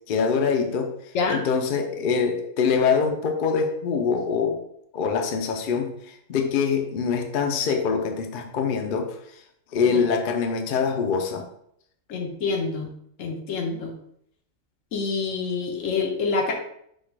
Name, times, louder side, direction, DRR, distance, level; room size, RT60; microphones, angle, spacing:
voice 1, 0.1-0.9 1.3-4.6 4.9-9.1 9.7-11.4, left 5 dB, 55° left, 3 dB, 0.6 m, -24 dB
voice 2, 12.1-12.9 13.2-13.9 14.9-16.5, left 4 dB, 80° left, 2 dB, 1.2 m, -27 dB
4.4 x 2.3 x 4.4 m, 0.72 s
omnidirectional pair, 1.3 m